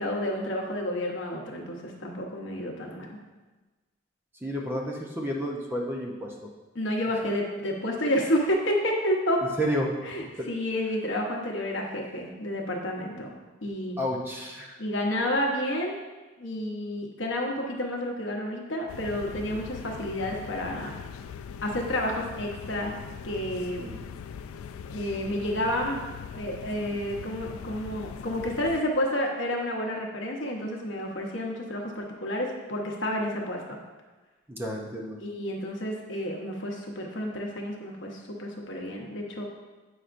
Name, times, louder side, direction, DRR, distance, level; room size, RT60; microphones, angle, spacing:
voice 1, 0.0-3.2 6.7-9.4 10.0-13.3 13.6-14.0 14.8-16.0 16.4-20.9 21.6-22.9 23.2-23.8 24.9-26.0 26.3-33.8 35.2-39.4, left 1 dB, 60° left, 0 dB, 0.9 m, -30 dB
voice 2, 4.4-6.3 9.6-10.0 10.4-10.5 14.0-14.8 19.5-19.6 23.8-24.0 34.5-35.2, equal, 10° right, -1 dB, 0.6 m, -31 dB
sound 1, 18.9-28.8, left 7 dB, 85° left, 0.3 m, -41 dB
7.9 x 5.6 x 2.5 m, 1.2 s
head